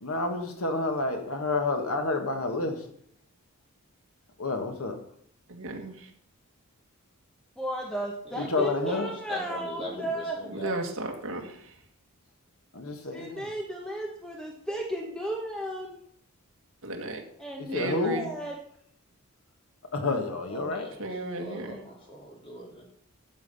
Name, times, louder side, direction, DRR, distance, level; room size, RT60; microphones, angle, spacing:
voice 1, 0.0-2.8 4.4-5.0 8.4-9.1 12.7-13.5 17.7-18.2 19.9-20.9, left 3 dB, 70° left, 5 dB, 1.7 m, -29 dB
voice 2, 5.5-6.1 10.5-11.7 16.8-17.2 17.7-18.3 21.0-21.8, right 2 dB, 60° right, 3 dB, 2.0 m, -34 dB
voice 3, 7.6-10.4 13.1-16.0 17.4-18.6, right 1 dB, 5° left, -1 dB, 1.3 m, -34 dB
voice 4, 8.2-10.8 20.5-22.8, equal, 25° left, -2 dB, 3.2 m, -41 dB
12.5 x 8.3 x 5.6 m, 0.65 s
head